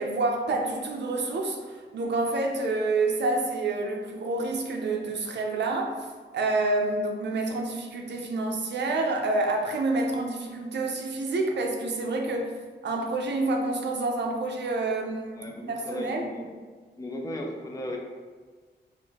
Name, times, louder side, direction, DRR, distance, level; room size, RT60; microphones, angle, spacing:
voice 1, 0.0-6.0 6.3-12.5 12.8-16.2, right 2 dB, 70° right, 2 dB, 0.5 m, -28 dB
voice 2, 15.3-16.5 17.0-18.0, left 1 dB, 20° left, 0 dB, 0.4 m, -36 dB
3.7 x 2.4 x 3.4 m, 1.5 s
wide cardioid pair, 175°, 19 cm